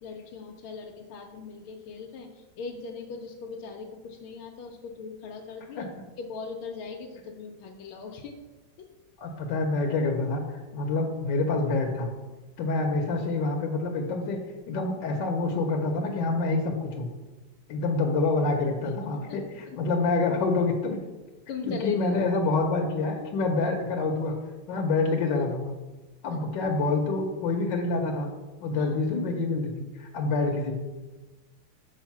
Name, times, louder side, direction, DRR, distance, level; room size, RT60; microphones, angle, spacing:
voice 1, 0.0-8.4 8.8-8.9 19.3-19.4 19.7-19.8 21.5-22.1 26.3-26.4 28.7-28.9, left 4 dB, 90° left, 1 dB, 1.5 m, -40 dB
voice 2, 9.2-12.1 12.6-14.4 14.7-17.1 17.7-19.4 19.8-21.0 21.6-24.4 24.7-25.7 26.2-28.3 28.6-30.8, left 3 dB, 70° left, 2 dB, 1.4 m, -27 dB
6.3 x 4.8 x 5.9 m, 1.2 s
omnidirectional pair, 2.2 m